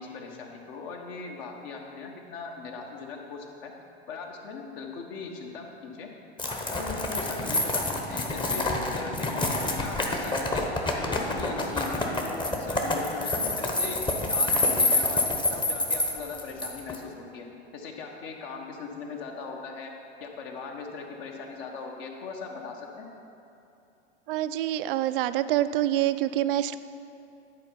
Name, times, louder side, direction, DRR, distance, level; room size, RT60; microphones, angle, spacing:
voice 1, 0.0-3.7 4.1-6.1 6.5-10.7 11.0-14.0 14.3-17.4 17.7-19.9 20.2-23.1, left 4 dB, 55° left, 1 dB, 1.4 m, -39 dB
sound 1, 6.4-17.0, left 2 dB, 15° left, 0.9 m, -27 dB
voice 2, 24.3-26.8, right 13 dB, 55° right, 12 dB, 0.4 m, -26 dB
10.0 x 4.4 x 5.6 m, 2.8 s
figure-of-eight pair, 95°, 34 cm